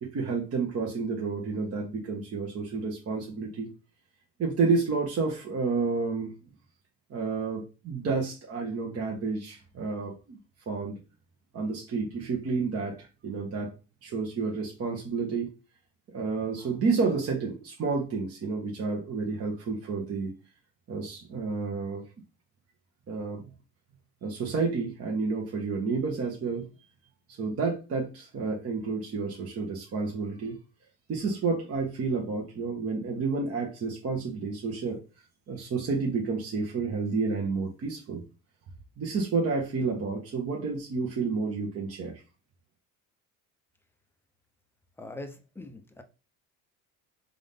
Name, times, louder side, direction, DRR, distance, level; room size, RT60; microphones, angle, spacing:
voice 1, 0.0-3.7 4.4-6.3 7.1-10.4 10.7-11.0 11.5-13.7 14.0-15.5 16.1-20.3 20.9-22.0 23.1-23.5 24.2-26.7 27.4-30.6 31.1-35.0 35.5-38.2 39.0-42.1, right 4 dB, 40° right, 1.1 m, -30 dB
voice 2, 45.0-46.0, left 2 dB, 5° left, 0.6 m, -42 dB
3.7 x 2.7 x 3.6 m
supercardioid pair, 95°, 36 cm